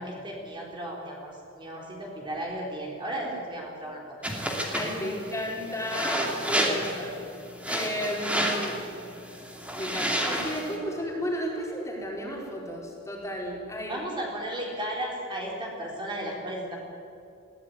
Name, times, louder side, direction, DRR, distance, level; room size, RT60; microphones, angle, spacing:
voice 1, 0.0-4.2 13.9-16.8, right 1 dB, 25° right, -2 dB, 3.7 m, -35 dB
sound 1, 4.2-10.8, equal, 5° right, 2.6 m, -30 dB
voice 2, 4.7-8.8 9.7-14.0, equal, 15° left, -2 dB, 4.3 m, -33 dB
21.0 x 16.0 x 9.4 m, 2.5 s
head